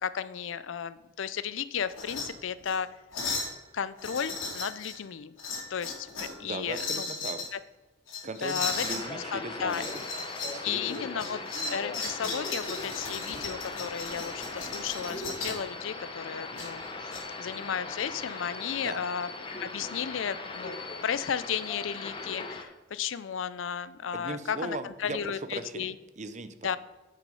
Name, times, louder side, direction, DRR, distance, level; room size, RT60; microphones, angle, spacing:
voice 1, 0.0-2.9 3.7-5.3 5.7-7.1 7.5-7.6 8.4-9.0 9.3-9.8 10.6-11.4 11.7-19.3 19.6-25.9 26.6-26.8, left 7 dB, 70° left, 15 dB, 0.5 m, -34 dB
sound 1, 1.9-2.3 2.6-2.8 3.1-3.5 4.0-5.0 5.4-6.4 6.7-7.5 8.1-9.0 9.7-10.6 10.9-15.6 16.6-17.2, left 3 dB, 90° left, 3.4 m, -36 dB
voice 2, 6.4-7.5 8.2-10.0 10.6-11.2 18.8-19.0 24.1-25.9 26.2-26.8, right 2 dB, 35° right, 11 dB, 0.6 m, -38 dB
sound 2, 8.6-22.6, left 3 dB, 25° left, 1.0 m, -39 dB
8.4 x 6.1 x 5.4 m, 1.2 s
head